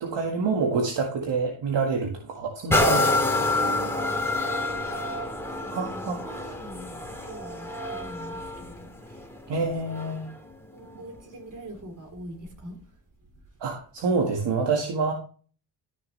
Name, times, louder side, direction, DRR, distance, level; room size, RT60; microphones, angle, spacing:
voice 1, 0.0-3.3 5.7-6.4 9.5-10.3 13.6-15.1, right 4 dB, 60° right, 1.8 m, -27 dB
sound 1, 2.7-10.3 10.9-11.0, left 2 dB, 5° left, 2.3 m, -28 dB
voice 2, 3.8-4.3 4.9-9.3 10.7-12.8 13.3-13.4, equal, 40° right, 3.8 m, -44 dB
13.0 x 6.6 x 3.2 m
cardioid pair, 95°, 46 cm